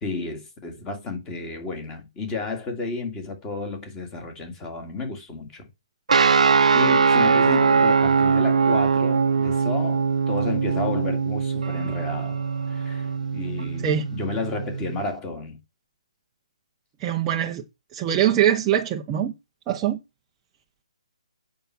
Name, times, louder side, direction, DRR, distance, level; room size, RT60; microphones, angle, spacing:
voice 1, 0.0-5.7 6.2-15.6, left 3 dB, 15° left, 2.2 m, -32 dB
sound 1, 6.1-15.0, right 5 dB, 70° right, 0.9 m, -21 dB
voice 2, 17.0-17.6 17.9-19.3 19.7-20.0, right 10 dB, 15° right, 0.7 m, -22 dB
9.1 x 5.7 x 5.9 m
hypercardioid pair, 165°, 4 cm